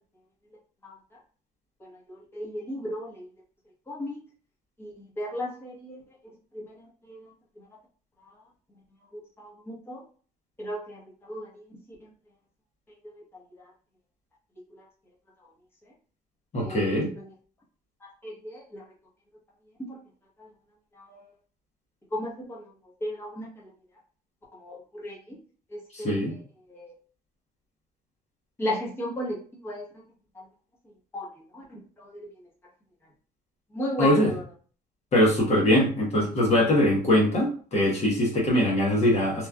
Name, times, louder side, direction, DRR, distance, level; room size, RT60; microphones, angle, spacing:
voice 1, 1.8-3.3 3.9-4.2 4.8-6.0 6.5-7.3 9.4-10.0 10.6-11.6 14.7-14.8 16.6-17.3 18.0-18.8 19.8-20.0 20.4-20.5 20.9-21.2 22.1-22.6 23.0-23.5 24.6-25.4 25.7-26.4 26.7-26.9 28.6-29.4 29.6-29.9 31.1-31.3 31.5-31.6 32.0-32.3 33.7-34.4, equal, 15° left, -5 dB, 1.0 m, -35 dB
voice 2, 16.5-17.1 25.9-26.3 34.0-34.3 35.1-39.5, left 1 dB, 40° left, -3 dB, 1.0 m, -22 dB
3.0 x 2.4 x 2.2 m, 0.41 s
cardioid pair, 110°, 17 cm